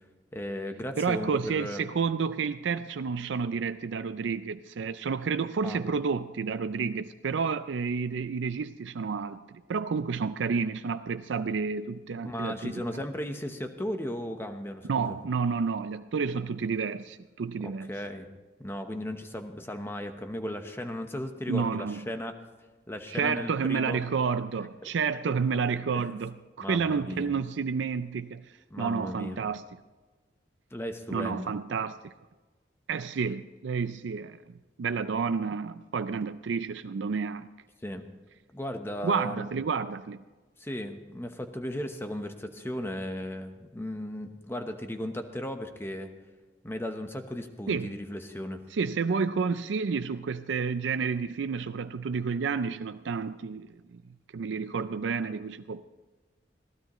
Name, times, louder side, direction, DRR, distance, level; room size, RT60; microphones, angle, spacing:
voice 1, 0.3-1.8 5.6-5.8 12.2-15.1 17.6-18.3 18.6-22.3 22.9-24.0 24.8-24.9 25.9-26.2 26.6-27.3 28.7-29.4 30.7-31.5 37.8-38.0 38.5-39.5 40.6-46.1 46.6-48.6, left 1 dB, 15° left, 1.0 m, -36 dB
voice 2, 1.0-13.0 14.9-17.9 21.5-22.1 23.1-29.6 31.1-32.1 32.9-34.4 34.8-37.5 39.0-40.2 47.7-47.9 48.7-54.0 54.3-55.9, right 5 dB, 80° right, 0.4 m, -30 dB
21.5 x 16.0 x 3.1 m
head